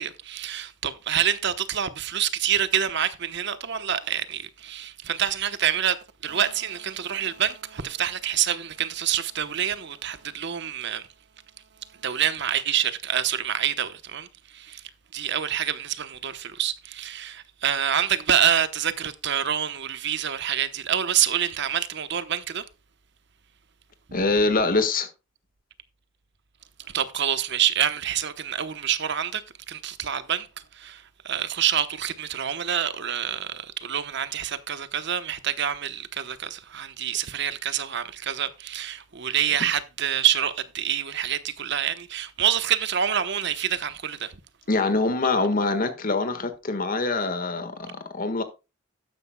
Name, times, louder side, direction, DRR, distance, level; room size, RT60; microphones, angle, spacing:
voice 1, 0.0-11.1 12.0-14.3 14.5-14.8 15.1-22.6 26.9-30.5 30.7-44.4, right 9 dB, 65° right, 1.0 m, -27 dB
voice 2, 24.1-25.1 44.7-48.4, left 3 dB, 45° left, 1.6 m, -24 dB
13.0 x 9.7 x 2.2 m
head